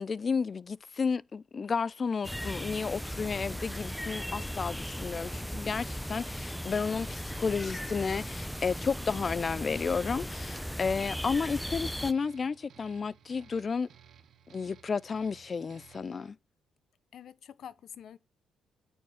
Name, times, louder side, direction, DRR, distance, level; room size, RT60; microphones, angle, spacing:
voice 1, 0.0-13.9 14.5-16.4, left 5 dB, 40° left, 0.5 m, -32 dB
sound 1, 2.2-12.1, equal, ahead, 0.7 m, -37 dB
sound 2, 6.7-16.3, right 8 dB, 65° right, 1.3 m, -57 dB
voice 2, 17.1-18.2, left 9 dB, 65° left, 0.8 m, -48 dB
9.2 x 7.2 x 7.1 m
cardioid pair, 90°, 0 cm